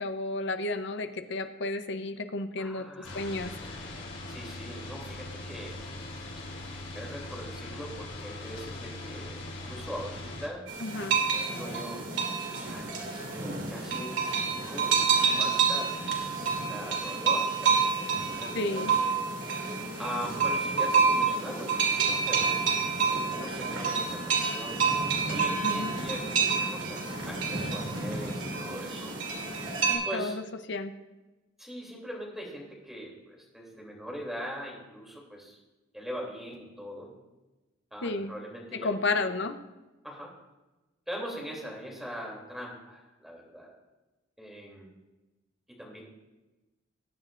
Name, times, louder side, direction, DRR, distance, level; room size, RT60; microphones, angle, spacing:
voice 1, 0.0-2.9 3.1-3.5 10.8-11.2 18.5-18.9 25.6-25.9 29.9-30.4 30.7-30.9 38.0-38.3 38.8-39.6, left 2 dB, 65° left, 9 dB, 0.7 m, -32 dB
voice 2, 2.6-3.5 4.3-5.9 6.9-10.6 11.5-12.1 12.6-15.9 16.6-18.9 20.0-22.8 23.3-25.0 25.3-29.1 30.0-30.4 31.6-35.6 35.9-37.1 37.9-39.3 40.0-40.3 41.1-43.7 44.4-44.9 45.7-46.1, equal, ahead, -2 dB, 2.8 m, -41 dB
sound 1, 3.0-10.5, left 2 dB, 90° left, 2.7 m, -40 dB
sound 2, 10.7-29.9, right 5 dB, 70° right, 2.6 m, -28 dB
20.5 x 8.9 x 2.5 m, 1.1 s
head